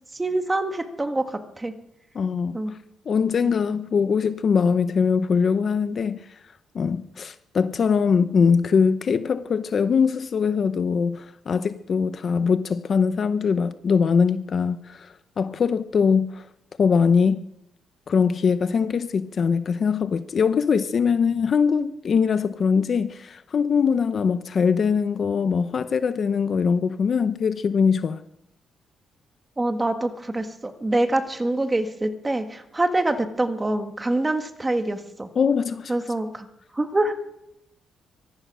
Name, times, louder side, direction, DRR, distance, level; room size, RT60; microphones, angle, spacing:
voice 1, 0.1-1.7 2.5-2.7 3.4-3.5 29.6-35.3 35.9-36.5 36.7-37.1, right 2 dB, 10° right, 1.5 m, -25 dB
voice 2, 2.1-2.8 3.1-6.4 6.7-16.5 16.8-17.4 18.1-28.2 35.4-35.9, left 6 dB, 35° left, 0.7 m, -22 dB
24.0 x 18.0 x 6.3 m
cardioid pair, 175°, 0 cm